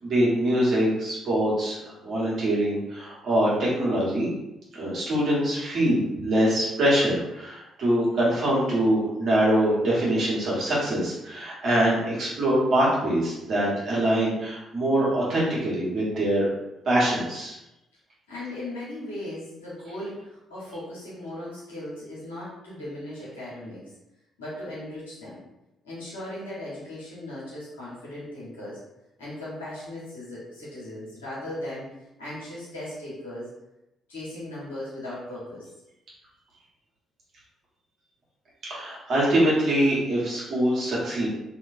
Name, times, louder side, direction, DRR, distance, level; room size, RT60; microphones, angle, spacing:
voice 1, 0.0-4.3 4.7-16.5 16.8-17.5 38.7-41.3, right 1 dB, 55° right, -7 dB, 1.4 m, -24 dB
voice 2, 18.3-23.8 24.4-25.4 25.8-28.8 29.2-33.5 34.1-35.7, left 1 dB, 85° left, -9 dB, 1.3 m, -37 dB
2.9 x 2.9 x 2.6 m, 0.92 s
hypercardioid pair, 45°, 0 cm